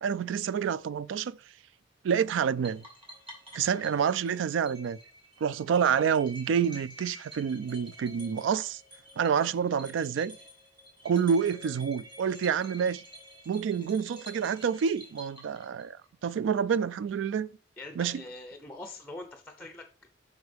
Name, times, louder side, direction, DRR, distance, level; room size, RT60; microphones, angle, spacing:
voice 1, 0.0-1.4 2.0-2.8 3.5-5.0 5.4-8.8 9.2-10.4 11.0-13.0 13.5-16.0 16.2-17.5 18.0-18.2, right 7 dB, 85° right, 0.3 m, -28 dB
sound 1, 2.6-16.1, equal, 25° right, 2.8 m, -50 dB
voice 2, 17.8-20.1, left 2 dB, 5° left, 0.6 m, -44 dB
8.0 x 5.3 x 3.4 m
head